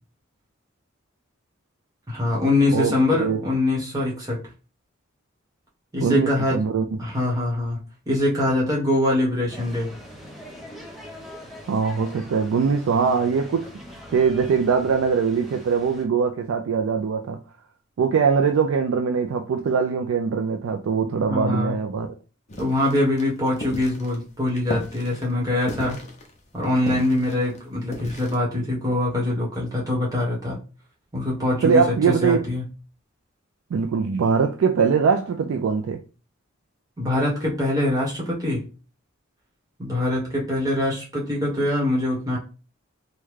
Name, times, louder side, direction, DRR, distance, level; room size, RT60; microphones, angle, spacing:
voice 1, 2.1-4.4 5.9-6.6 7.0-7.8 8.1-9.9 21.1-21.8 22.6-26.0 26.5-30.6 31.1-32.6 37.0-38.6 39.8-42.4, left 1 dB, 20° right, 1.1 m, -23 dB
voice 2, 2.7-3.4 6.0-7.0 11.7-13.7 14.1-17.4 18.0-22.1 31.6-32.5 33.7-36.0, right 5 dB, 85° right, 0.3 m, -22 dB
sound 1, 9.5-16.0, equal, ahead, 0.7 m, -42 dB
sound 2, 22.5-28.4, left 1 dB, 35° left, 0.6 m, -36 dB
3.5 x 2.2 x 3.1 m
head